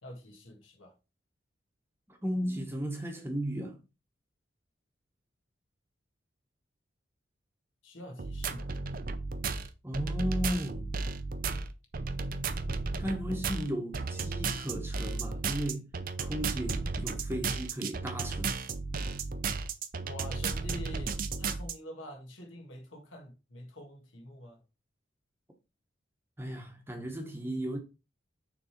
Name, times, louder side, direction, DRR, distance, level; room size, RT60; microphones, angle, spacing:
voice 1, 0.0-1.0 7.8-8.7 20.0-24.6, left 1 dB, 80° left, 1.6 m, -46 dB
voice 2, 2.1-3.8 9.8-10.9 13.0-15.9 16.2-18.6 26.4-27.8, equal, 10° right, 1.0 m, -35 dB
sound 1, 8.2-21.7, right 4 dB, 45° right, 0.5 m, -34 dB
6.7 x 3.4 x 4.4 m
head